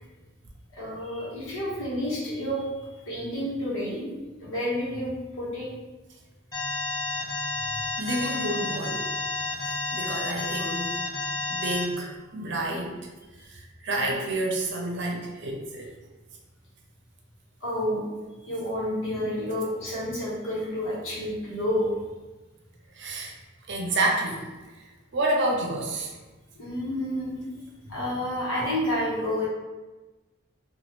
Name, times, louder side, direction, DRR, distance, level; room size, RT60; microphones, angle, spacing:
voice 1, 0.7-2.7 3.1-4.1 4.4-5.7 17.6-18.0 18.5-21.9 26.5-27.5 27.9-29.5, left 1 dB, 80° left, -6 dB, 1.1 m, -29 dB
Alarm, 6.5-11.8, left 2 dB, 20° left, 0.8 m, -30 dB
voice 2, 8.0-9.1 9.6-10.9 11.5-13.0 13.5-15.9 23.0-23.3 23.7-24.4 25.1-26.1 27.8-28.0, right 1 dB, 60° right, 0 dB, 0.6 m, -29 dB
2.9 x 2.3 x 3.0 m, 1.2 s
head